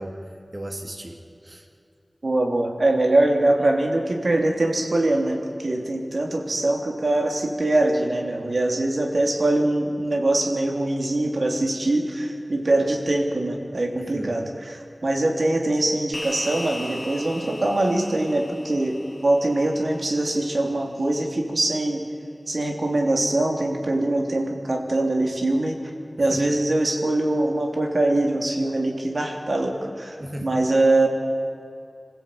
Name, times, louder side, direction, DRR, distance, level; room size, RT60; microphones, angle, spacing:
voice 1, 0.0-1.7 13.9-14.4 26.2-26.6 30.2-30.5, right 1 dB, 45° right, 2 dB, 3.2 m, -36 dB
voice 2, 2.2-22.1 22.5-25.8 26.2-31.1, right 2 dB, 70° right, 1 dB, 3.3 m, -23 dB
sound 1, 16.1-20.8, left 1 dB, 20° left, 2.1 m, -38 dB
26.5 x 16.0 x 8.8 m, 2.7 s
wide cardioid pair, 50°, 0 cm